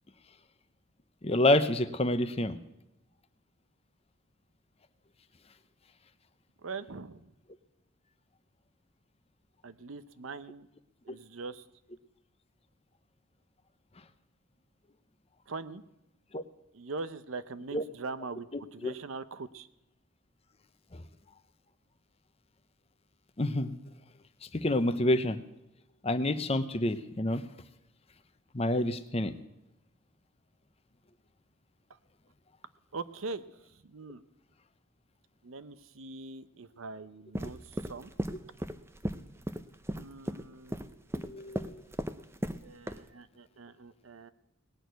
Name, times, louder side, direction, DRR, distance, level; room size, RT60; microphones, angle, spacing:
voice 1, 1.2-2.6 16.3-16.4 17.7-17.8 18.8-18.9 23.4-23.7 24.5-25.4 26.0-27.4 28.5-29.4 41.2-41.8, left 1 dB, 30° left, 11 dB, 0.7 m, -28 dB
voice 2, 6.6-7.3 9.6-10.7 11.0-11.6 15.5-15.8 16.7-19.7 32.9-33.5 33.8-34.2 35.4-38.1 39.9-41.0 42.6-44.3, right 3 dB, 80° right, 13 dB, 0.7 m, -42 dB
sound 1, 37.3-42.6 42.9-43.0, right 1 dB, 10° right, 0.5 m, -36 dB
19.0 x 6.5 x 9.2 m, 0.88 s
head